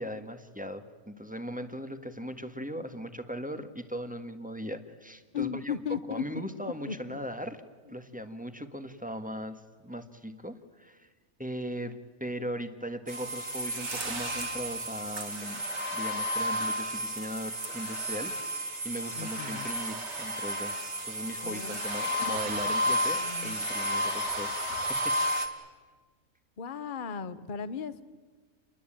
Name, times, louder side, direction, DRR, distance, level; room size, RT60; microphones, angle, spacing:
voice 1, 0.0-5.7 6.1-7.6 7.9-11.1 11.4-15.6 15.9-20.8 21.0-25.2, equal, 5° right, 8 dB, 1.5 m, -39 dB
voice 2, 5.3-7.2 19.2-19.7 21.4-21.8 22.2-22.4 22.8-23.6 26.6-28.0, left 7 dB, 40° left, 13 dB, 1.1 m, -37 dB
sound 1, 13.1-25.5, equal, 55° right, 2.6 m, -32 dB
29.0 x 21.5 x 9.0 m, 1.4 s
omnidirectional pair, 1.4 m